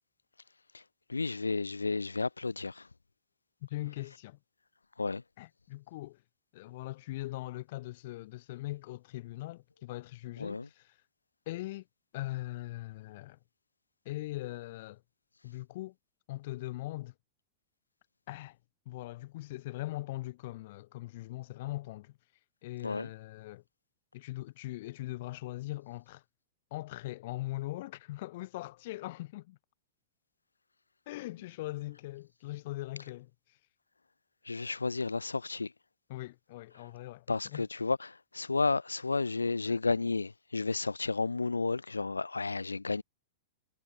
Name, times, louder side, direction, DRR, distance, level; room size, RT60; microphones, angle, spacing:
voice 1, 1.1-2.9 5.0-5.2 10.4-10.7 22.8-23.1 34.4-35.7 37.3-43.0, left 3 dB, 85° left, 1.1 m, -32 dB
voice 2, 3.6-4.4 5.4-6.2 6.5-11.0 11.5-11.9 12.1-13.4 14.1-15.0 15.4-15.9 16.3-17.1 18.3-18.6 18.9-22.2 22.6-23.6 24.1-26.2 26.7-29.6 31.1-33.6 36.1-37.6 39.7-39.8, left 17 dB, 55° left, 2.3 m, -41 dB
figure-of-eight pair, 95°, 0 cm